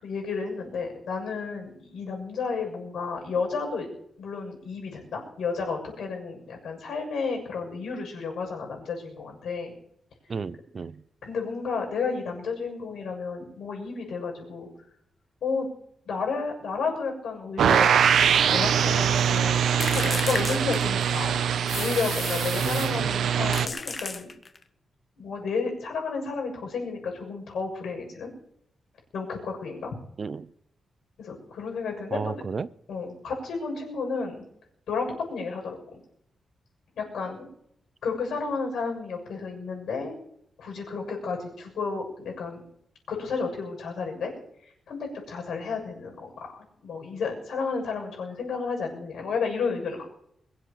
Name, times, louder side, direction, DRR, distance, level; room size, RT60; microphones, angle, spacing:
voice 1, 0.0-3.9 4.2-9.7 11.2-14.7 15.4-15.7 16.0-18.0 18.5-21.4 21.7-24.3 25.2-28.3 29.1-29.9 31.2-32.4 32.9-34.4 34.9-36.0 37.0-37.5 38.0-40.2 40.6-42.6 43.1-44.3 44.9-50.1, left 4 dB, 80° left, 1 dB, 6.7 m, -32 dB
voice 2, 10.3-11.0 22.6-23.1 30.2-30.5 32.1-32.7, right 5 dB, 40° right, 18 dB, 0.6 m, -33 dB
sound 1, 17.6-23.7, right 8 dB, 90° right, 1.0 m, -23 dB
sound 2, 19.8-21.2 21.7-23.0 23.5-24.6, left 4 dB, 35° left, 1.3 m, -34 dB
22.5 x 7.9 x 6.8 m, 0.71 s
wide cardioid pair, 120°, 0 cm